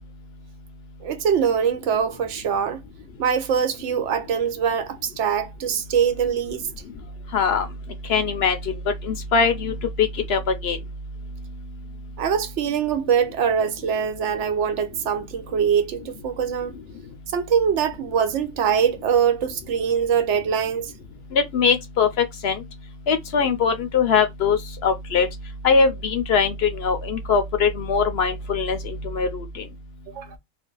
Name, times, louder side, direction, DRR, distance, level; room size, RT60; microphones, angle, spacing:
voice 1, 1.0-2.8 3.2-6.7 12.2-16.7 17.3-20.9 30.1-30.3, right 7 dB, 70° right, 0.9 m, -23 dB
voice 2, 7.3-7.6 8.1-8.6 9.0-9.7 10.0-10.8 21.3-22.1 22.4-22.6 23.1-25.3 25.6-29.4, left 5 dB, 60° left, 0.8 m, -21 dB
2.6 x 2.3 x 3.7 m
omnidirectional pair, 1.3 m